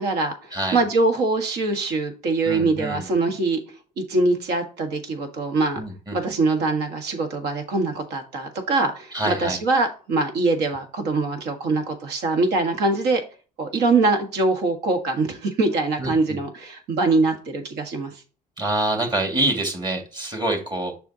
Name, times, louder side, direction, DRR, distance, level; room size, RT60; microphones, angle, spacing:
voice 1, 0.0-3.6 4.0-5.8 6.1-13.2 13.6-18.1, right 3 dB, 75° right, 5 dB, 1.6 m, -23 dB
voice 2, 2.5-3.0 5.8-6.2 9.1-9.6 16.0-16.4 18.6-20.9, right 1 dB, 25° right, 3 dB, 2.1 m, -26 dB
7.1 x 5.5 x 2.8 m, 0.35 s
cardioid pair, 110°, 17 cm